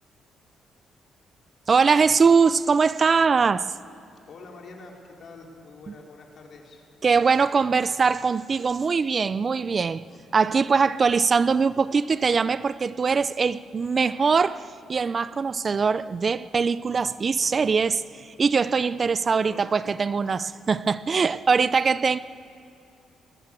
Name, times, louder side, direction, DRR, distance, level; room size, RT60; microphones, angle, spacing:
voice 1, 1.7-3.7 7.0-10.0 10.3-14.6 14.9-18.0 18.4-22.2, right 5 dB, 40° right, 0.4 m, -22 dB
voice 2, 4.3-6.8 7.1-7.3 7.5-7.7 10.1-10.3 17.0-17.1 17.4-17.7 19.4-20.2, left 3 dB, 55° left, 4.1 m, -46 dB
20.0 x 17.5 x 8.3 m
cardioid pair, 90°, 0 cm